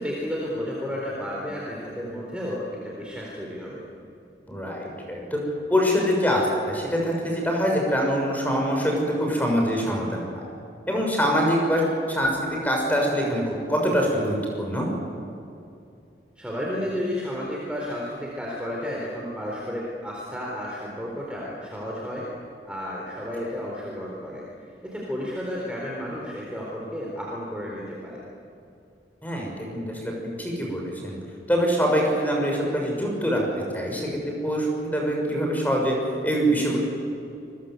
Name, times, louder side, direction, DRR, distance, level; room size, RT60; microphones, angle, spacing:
voice 1, 0.0-3.8 16.4-22.3 22.6-24.4 24.8-28.2, equal, 5° right, -4 dB, 4.1 m, -32 dB
voice 2, 4.5-5.4 5.7-10.2 10.9-12.3 12.6-14.9 29.2-30.1 30.4-31.2 31.5-35.9 36.2-36.8, equal, 10° left, 0 dB, 6.3 m, -24 dB
28.5 x 22.0 x 8.1 m, 2.6 s
head